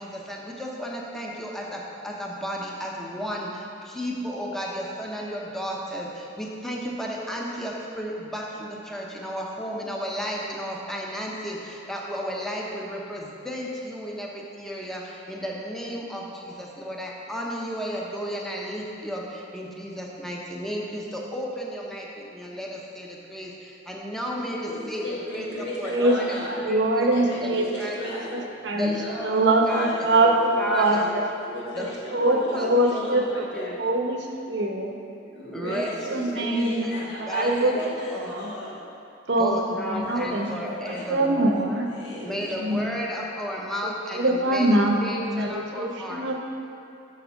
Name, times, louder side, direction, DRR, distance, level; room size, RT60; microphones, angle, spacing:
voice 1, 0.0-28.0 28.7-29.9 30.6-31.1 31.7-31.9 32.2-33.2 33.5-33.8 35.5-38.4 39.4-41.5 42.2-46.2, equal, ahead, -3 dB, 0.9 m, -33 dB
voice 2, 24.6-26.6 27.1-28.3 28.7-30.2 30.5-31.1 31.4-33.8 34.7-38.8 40.0-40.6 40.8-41.6 41.9-42.7 45.9-46.4, left 1 dB, 70° left, -6 dB, 2.0 m, -37 dB
voice 3, 25.9-28.9 29.2-31.3 31.8-34.2 34.5-34.9 35.6-36.9 37.2-38.5 39.3-39.6 39.9-41.9 42.6-42.8 43.8-44.9 45.3-46.4, right 1 dB, 70° right, 2 dB, 0.9 m, -24 dB
6.7 x 6.1 x 5.7 m, 2.6 s
head